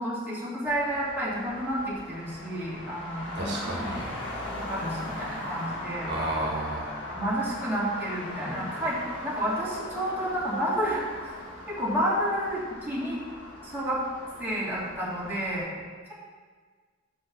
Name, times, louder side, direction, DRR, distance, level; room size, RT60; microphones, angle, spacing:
voice 1, 0.0-4.2 4.6-6.1 7.1-11.4 11.7-13.2 13.6-14.0 14.4-15.6, equal, 10° right, -8 dB, 2.5 m, -30 dB
Traffic noise roadway noise, 0.7-15.6, left 1 dB, 65° left, 1.8 m, -39 dB
voice 2, 3.3-4.1 6.1-7.0, right 1 dB, 60° right, -3 dB, 1.4 m, -32 dB
7.7 x 5.4 x 6.0 m, 1.5 s
head